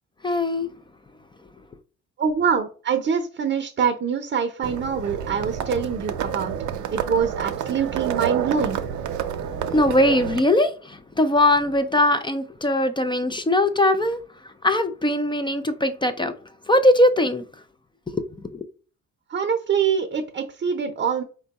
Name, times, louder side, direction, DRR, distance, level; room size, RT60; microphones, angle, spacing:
voice 1, 0.2-0.7 9.7-10.7 11.2-14.2 14.6-16.3 16.7-17.4, left 1 dB, 15° left, 0.4 m, -20 dB
voice 2, 2.2-6.5 6.9-8.8 19.3-21.2, right 6 dB, 35° right, 0.7 m, -24 dB
Livestock farm animals working animals, 4.6-10.4, right 9 dB, 75° right, 0.6 m, -29 dB
4.4 x 2.2 x 4.0 m
cardioid pair, 90°, 30 cm